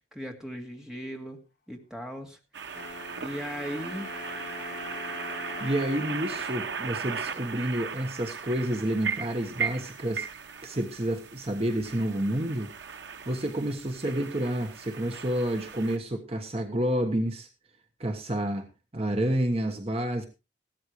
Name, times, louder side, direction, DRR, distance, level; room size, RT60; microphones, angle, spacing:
voice 1, 0.1-1.4 1.7-2.4 3.2-4.3, equal, 5° right, 2 dB, 2.1 m, -38 dB
sound 1, 2.5-16.0, right 6 dB, 85° right, 1.0 m, -37 dB
Wind instrument woodwind instrument, 2.7-7.7, left 3 dB, 65° left, 1.8 m, -42 dB
voice 2, 5.6-10.3 10.6-12.7 13.3-17.5 18.0-18.7 18.9-20.3, right 1 dB, 35° right, 5 dB, 1.2 m, -29 dB
16.0 x 13.0 x 3.1 m, 0.28 s
head